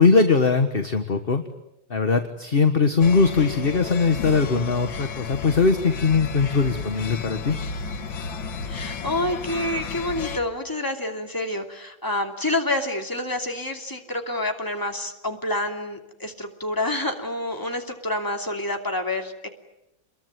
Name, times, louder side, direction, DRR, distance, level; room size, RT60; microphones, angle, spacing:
voice 1, 0.0-1.4 1.9-7.6, left 4 dB, 30° left, 7 dB, 1.5 m, -20 dB
sound 1, 3.0-10.4, left 5 dB, 80° left, 2.2 m, -33 dB
voice 2, 8.6-19.5, left 1 dB, 10° left, 3 dB, 2.8 m, -28 dB
28.5 x 22.0 x 9.4 m, 0.88 s
omnidirectional pair, 2.1 m